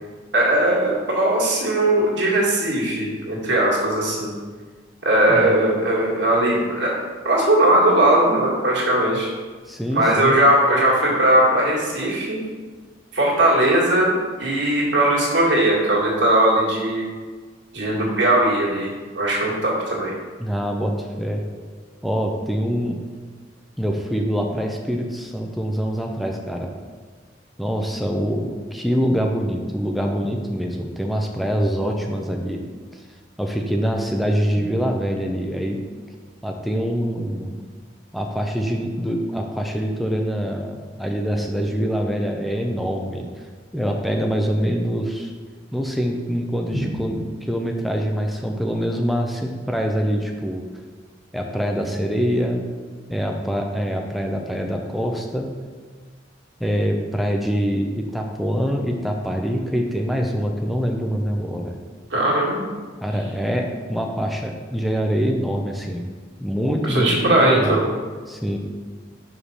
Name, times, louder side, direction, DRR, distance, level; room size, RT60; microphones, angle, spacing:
voice 1, 0.3-4.3 5.0-9.3 9.9-12.4 13.1-14.1 14.4-17.1 17.7-20.1 46.7-46.8 62.1-62.6 66.8-67.8, right 1 dB, 65° right, -4 dB, 1.9 m, -19 dB
voice 2, 9.7-10.4 20.4-21.4 22.0-23.0 23.8-26.7 27.6-32.6 33.4-35.8 36.4-37.6 38.1-43.3 43.7-45.3 45.7-47.2 47.4-50.6 51.3-52.6 53.1-55.5 56.6-61.8 63.0-66.1 66.4-67.8 68.3-68.6, equal, ahead, 1 dB, 0.5 m, -24 dB
5.7 x 5.1 x 4.9 m, 1.5 s
head